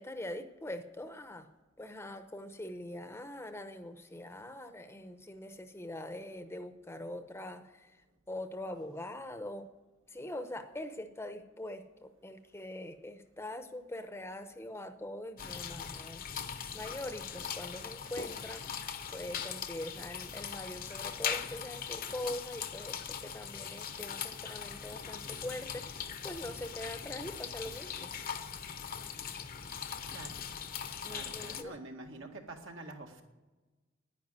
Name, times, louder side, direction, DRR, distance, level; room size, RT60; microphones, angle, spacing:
voice 1, 0.0-1.5 1.8-8.0 8.3-9.7 10.1-16.3 16.7-28.1 31.0-31.8, left 1 dB, 15° left, 9 dB, 0.7 m, -43 dB
sound 1, 15.4-31.6, left 7 dB, 45° left, 0.8 m, -40 dB
voice 2, 31.1-33.2, right 2 dB, 75° right, 2 dB, 2.0 m, -46 dB
10.5 x 10.0 x 9.4 m, 1.2 s
head